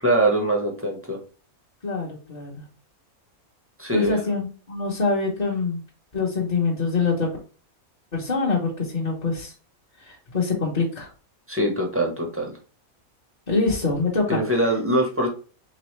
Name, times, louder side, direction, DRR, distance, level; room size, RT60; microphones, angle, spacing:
voice 1, 0.0-1.2 3.8-4.2 11.5-12.5 14.3-15.3, right 1 dB, 15° right, 0 dB, 0.6 m, -23 dB
voice 2, 1.8-2.6 3.9-5.8 6.1-7.3 8.1-9.5 10.0-11.1 13.5-14.4, left 4 dB, 35° left, -4 dB, 0.8 m, -25 dB
3.7 x 3.0 x 3.1 m, 0.36 s
omnidirectional pair, 1.5 m